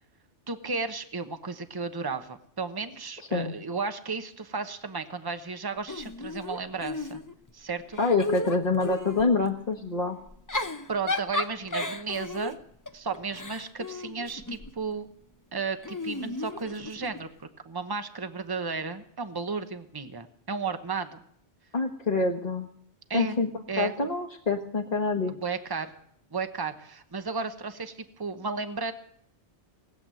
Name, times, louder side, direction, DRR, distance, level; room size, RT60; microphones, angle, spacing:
voice 1, 0.5-7.2 7.5-8.0 10.9-12.6 12.9-15.1 15.5-21.2 23.1-23.4 23.7-23.9 25.3-25.9 26.3-28.9, right 4 dB, 20° right, 9 dB, 0.9 m, -34 dB
Giggle / Chuckle chortle, 5.9-7.5 7.9-9.3 10.3-14.8 15.8-17.2, left 2 dB, 20° left, 0.7 m, -34 dB
voice 2, 8.0-10.2 21.7-22.7 23.1-23.5 23.8-25.3, left 3 dB, 40° left, -1 dB, 1.4 m, -26 dB
19.0 x 8.0 x 9.0 m, 0.67 s
omnidirectional pair, 1.1 m